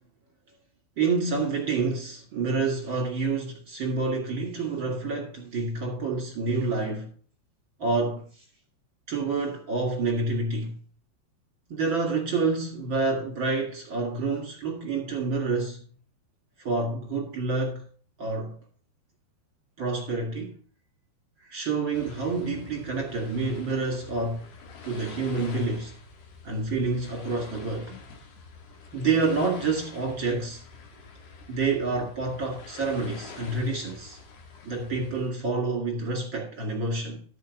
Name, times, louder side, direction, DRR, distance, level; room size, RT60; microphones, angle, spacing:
voice 1, 1.0-7.1 7.8-8.3 9.1-10.7 11.7-15.8 16.6-17.8 18.2-18.6 19.8-20.6 21.5-24.5 24.8-25.9 26.4-27.9 28.9-30.6 31.5-34.2 34.6-37.2, right 3 dB, 50° right, 1.5 m, -28 dB
sound 1, 21.9-35.3, left 4 dB, 65° left, 3.2 m, -46 dB
13.0 x 4.7 x 6.3 m
omnidirectional pair, 5.3 m